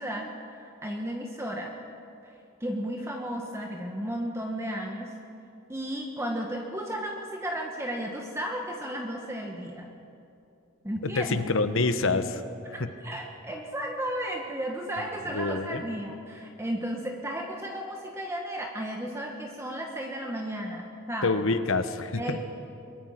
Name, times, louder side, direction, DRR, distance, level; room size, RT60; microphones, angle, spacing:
voice 1, 0.0-1.7 2.2-2.3 2.6-5.1 5.7-9.9 10.8-11.5 12.1-12.2 13.0-21.4 22.2-22.4, equal, 15° right, 1 dB, 1.5 m, -34 dB
voice 2, 11.0-12.2 12.7-12.8 15.3-15.8 21.2-22.4, left 3 dB, 65° left, 10 dB, 1.1 m, -26 dB
22.5 x 22.0 x 5.9 m, 2.6 s
head